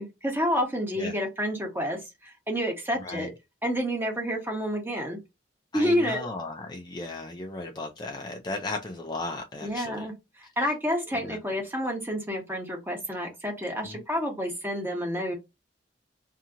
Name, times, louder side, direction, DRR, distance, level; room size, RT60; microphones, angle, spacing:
voice 1, 0.0-3.3 3.6-5.2 5.7-6.3 9.6-15.3, equal, 10° right, 1.1 m, -29 dB
voice 2, 3.0-3.3 5.7-10.1 11.1-11.4 13.8-14.0, left 2 dB, 25° left, 0.4 m, -36 dB
2.8 x 2.7 x 2.4 m
head